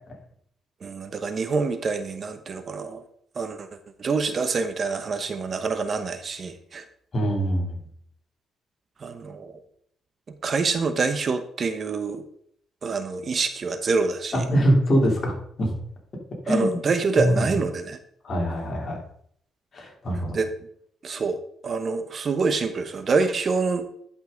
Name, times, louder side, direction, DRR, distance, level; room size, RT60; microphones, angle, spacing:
voice 1, 0.8-3.0 3.4-3.7 4.0-6.8 9.0-9.6 10.4-12.2 12.8-14.4 16.5-18.0 20.3-20.5 21.0-23.9, right 4 dB, 45° right, 9 dB, 0.9 m, -26 dB
voice 2, 7.1-7.8 14.3-15.7 16.4-16.9 17.2-17.4 18.2-19.0 19.7-20.4, equal, 40° left, -1 dB, 3.3 m, -23 dB
11.0 x 5.5 x 3.9 m, 0.65 s
cardioid pair, 90°, 0 cm